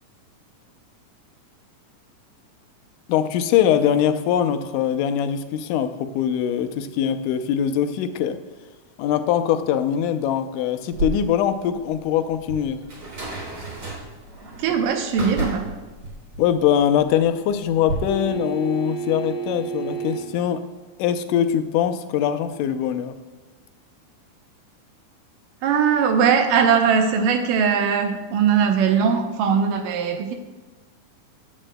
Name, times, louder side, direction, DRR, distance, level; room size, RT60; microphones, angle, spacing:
voice 1, 3.1-8.4 9.0-12.8 16.4-20.6 21.0-23.2, left 9 dB, 80° left, 9 dB, 2.1 m, -22 dB
sound 1, 10.9-17.9, right 2 dB, 45° right, 3.3 m, -33 dB
voice 2, 14.6-15.7 25.6-30.3, right 7 dB, 85° right, 5 dB, 2.3 m, -20 dB
sound 2, 18.1-20.4 23.0-23.1, right 7 dB, 25° left, 1.1 m, -31 dB
15.0 x 9.8 x 2.2 m, 1.2 s
omnidirectional pair, 3.8 m